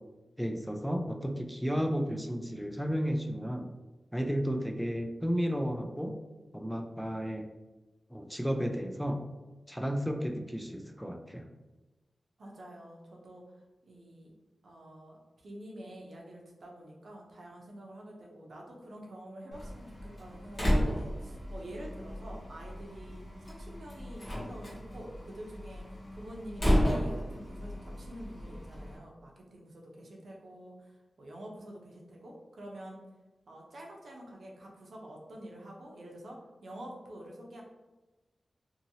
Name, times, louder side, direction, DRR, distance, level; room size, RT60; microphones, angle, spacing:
voice 1, 0.4-3.7 4.1-6.2 6.5-7.5 8.1-9.2 9.7-11.5, equal, ahead, 4 dB, 0.3 m, -33 dB
voice 2, 12.4-14.3 14.6-33.0 33.5-37.6, right 1 dB, 75° right, -1 dB, 0.6 m, -47 dB
Slam, 19.5-28.9, equal, 40° left, 1.0 m, -33 dB
2.7 x 2.7 x 2.7 m, 1.1 s
wide cardioid pair, 85°, 0 cm